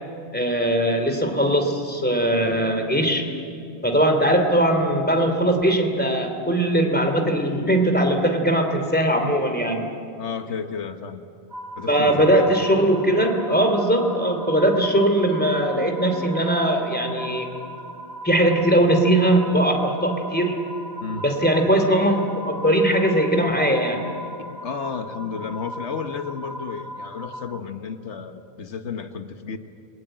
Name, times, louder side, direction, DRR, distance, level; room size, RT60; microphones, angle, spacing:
voice 1, 0.3-3.3 3.8-9.9 11.9-17.5 18.2-20.6 21.2-24.0, right 1 dB, 10° left, 4 dB, 2.9 m, -20 dB
voice 2, 10.2-11.2 11.8-12.5 21.0-21.3 24.4-29.6, left 6 dB, 80° left, 7 dB, 1.4 m, -32 dB
sound 1, 11.5-27.6, equal, 20° right, 1.1 m, -38 dB
29.5 x 21.0 x 9.1 m, 2.6 s
omnidirectional pair, 1.2 m